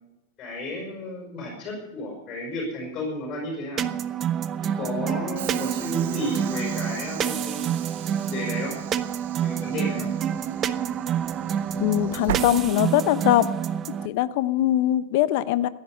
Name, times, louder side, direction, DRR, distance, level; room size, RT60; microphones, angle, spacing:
voice 1, 0.4-3.9 4.6-7.7 8.2-8.7 9.4-10.1, left 1 dB, 30° left, -1 dB, 5.7 m, -32 dB
sound 1, 3.8-14.1, right 9 dB, 30° right, 0.8 m, -28 dB
Train / Sliding door, 5.4-13.3, right 12 dB, 60° right, 0.6 m, -38 dB
voice 2, 11.8-13.5 13.9-15.7, left 14 dB, 55° left, 16 dB, 0.8 m, -22 dB
15.5 x 10.0 x 8.0 m, 0.98 s
figure-of-eight pair, 90°, 0 cm